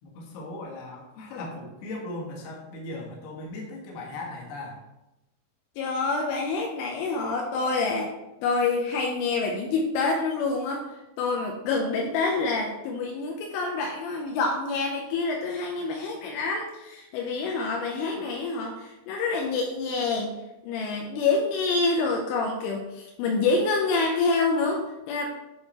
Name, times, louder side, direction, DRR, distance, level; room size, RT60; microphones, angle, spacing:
voice 1, 0.0-4.8, left 2 dB, 65° left, -2 dB, 3.0 m, -38 dB
voice 2, 5.8-8.1 8.4-10.9 11.2-20.3 20.6-25.3, left 3 dB, 85° left, 0 dB, 3.1 m, -27 dB
11.0 x 3.7 x 3.0 m, 0.96 s
omnidirectional pair, 5.7 m